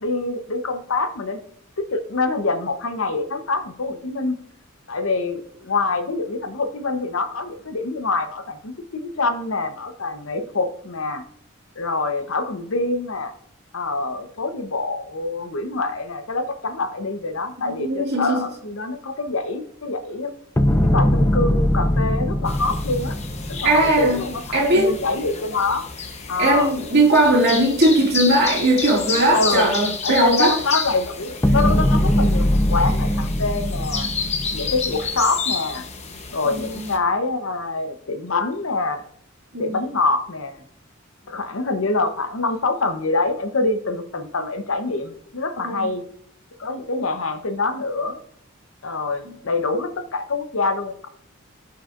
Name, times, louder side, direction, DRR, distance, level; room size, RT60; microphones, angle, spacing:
voice 1, 0.0-1.4 1.9-4.4 4.9-11.2 11.8-13.3 13.7-20.3 20.9-23.2 23.5-25.9 26.3-26.7 29.3-29.7 30.0-34.1 34.5-35.8 36.3-39.0 39.6-40.6 41.3-46.0 46.6-48.2 48.8-51.1, left 3 dB, 75° left, 0.9 m, -25 dB
voice 2, 17.6-18.5 23.6-24.2 24.5-24.9 26.4-30.6 36.4-36.9 39.5-39.8 45.6-45.9 49.2-49.3, right 1 dB, 50° right, 2.4 m, -19 dB
sound 1, 20.6-24.8 31.4-35.2, left 1 dB, 15° left, 0.5 m, -21 dB
sound 2, 22.5-37.0, left 5 dB, 30° left, 0.9 m, -30 dB
15.5 x 5.7 x 2.5 m
head